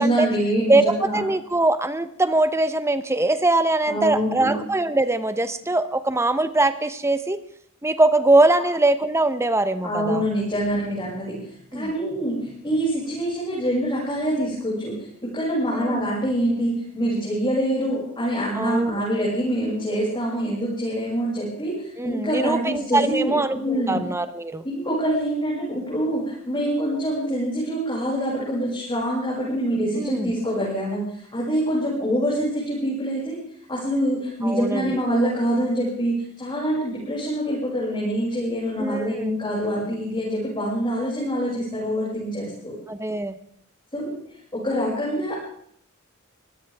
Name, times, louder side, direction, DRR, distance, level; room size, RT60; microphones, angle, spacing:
voice 1, 0.0-1.2 3.9-4.5 9.8-11.4 11.7-14.9 15.3-24.0 24.6-31.0 31.3-33.4 33.7-42.7 43.9-44.2 44.5-45.3, equal, 25° left, -7 dB, 6.8 m, -25 dB
voice 2, 0.7-7.4 7.8-10.2 11.7-11.9 15.7-16.1 18.5-19.0 22.0-24.6 30.0-30.3 34.4-35.0 38.8-39.3 42.9-43.4, right 2 dB, 15° right, 11 dB, 1.0 m, -22 dB
24.0 x 16.5 x 3.6 m, 0.68 s
head